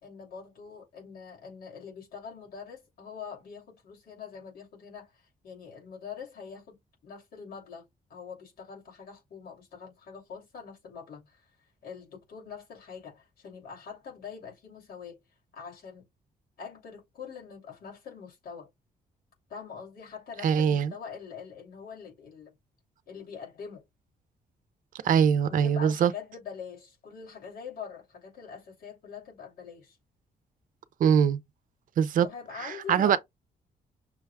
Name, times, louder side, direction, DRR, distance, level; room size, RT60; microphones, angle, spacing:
voice 1, 0.0-6.8 7.0-11.5 11.8-15.2 15.5-16.0 16.6-18.7 19.5-22.5 23.1-23.8 25.5-30.0 32.2-33.2, left 6 dB, 75° left, 3.0 m, -44 dB
voice 2, 20.4-20.9 25.0-26.1 31.0-31.4 32.0-32.3 32.6-33.2, right 8 dB, 60° right, 0.5 m, -22 dB
6.1 x 2.3 x 3.3 m
cardioid pair, 175°, 15 cm